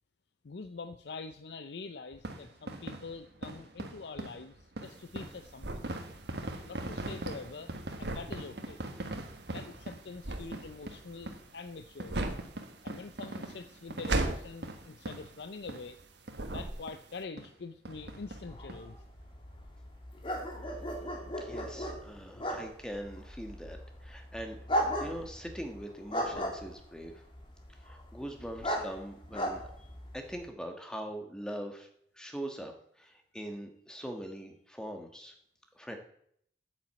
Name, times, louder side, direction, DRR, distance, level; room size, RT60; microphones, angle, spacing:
voice 1, 0.4-5.9 6.6-7.7 8.0-8.8 9.5-12.2 12.8-16.0 16.5-19.0, left 4 dB, 70° left, 10 dB, 0.6 m, -45 dB
sound 1, 2.1-16.0 16.3-16.4 16.9-17.0 17.4-17.5 17.8-18.8 19.2-19.3 19.5-19.6, right 1 dB, 65° right, 1.5 m, -42 dB
sound 2, 4.9-16.0 16.3-17.2, right 2 dB, 80° right, 1.4 m, -37 dB
sound 3, 17.9-30.5, equal, 30° left, 2.2 m, -37 dB
voice 2, 21.4-27.2 27.8-29.9 30.1-31.9 32.2-35.3 35.7-36.0, equal, 5° left, 4 dB, 1.4 m, -42 dB
9.1 x 7.8 x 7.5 m, 0.67 s
head